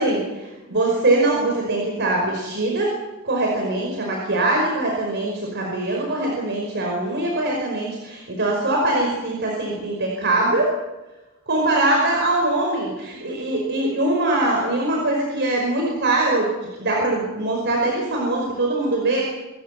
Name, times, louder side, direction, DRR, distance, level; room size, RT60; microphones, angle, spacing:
voice 1, 0.0-2.9 3.2-10.7 11.5-16.5 16.8-19.2, right 2 dB, 55° right, -1 dB, 5.3 m, -22 dB
27.5 x 14.0 x 8.4 m, 1.1 s
head